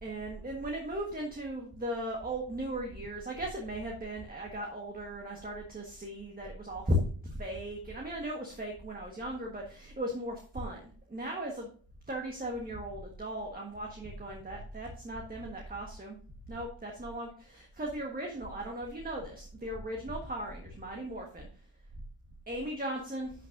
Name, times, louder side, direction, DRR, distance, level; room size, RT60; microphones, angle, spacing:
voice 1, 0.0-11.7 12.1-16.2 16.5-17.3 17.5-21.5 22.5-23.3, equal, 20° right, 0 dB, 1.4 m, -37 dB
11.5 x 6.5 x 2.6 m, 0.44 s
wide cardioid pair, 125°, 50 cm